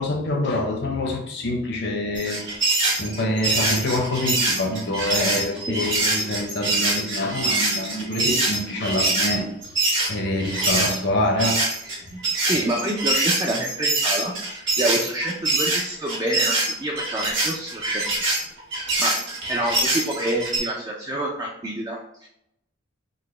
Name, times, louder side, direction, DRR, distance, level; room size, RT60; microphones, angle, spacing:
voice 1, 0.0-2.6 3.0-9.5 10.1-11.6, left 1 dB, 60° left, 1 dB, 0.8 m, -25 dB
sound 1, 2.2-11.0 11.4-20.6, right 2 dB, 60° right, 1.3 m, -24 dB
voice 2, 12.4-18.0 19.0-19.2 19.5-22.3, right 1 dB, 20° right, -1 dB, 0.4 m, -27 dB
4.0 x 2.1 x 3.2 m, 0.78 s
head